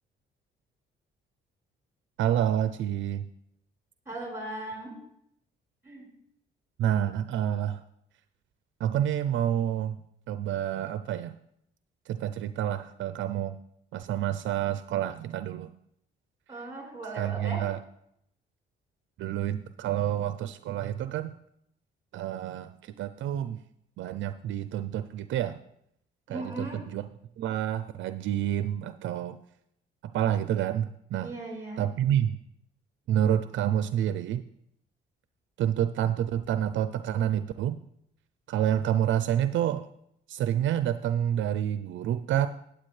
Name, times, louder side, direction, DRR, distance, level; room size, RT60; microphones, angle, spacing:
voice 1, 2.2-3.2 6.8-7.8 8.8-11.3 12.1-13.6 13.9-15.7 17.2-17.8 19.2-21.3 22.1-23.6 24.0-25.6 26.3-27.0 27.4-29.4 30.1-31.3 31.8-32.4 33.1-34.4 35.6-37.8 38.5-39.9 40.3-42.5, right 10 dB, 75° right, 12 dB, 0.5 m, -28 dB
voice 2, 4.0-5.0 5.8-6.0 16.5-17.6 26.3-26.8 31.2-31.8, right 2 dB, 15° right, -1 dB, 4.8 m, -37 dB
12.0 x 9.0 x 3.2 m, 0.74 s
cardioid pair, 90°, 20 cm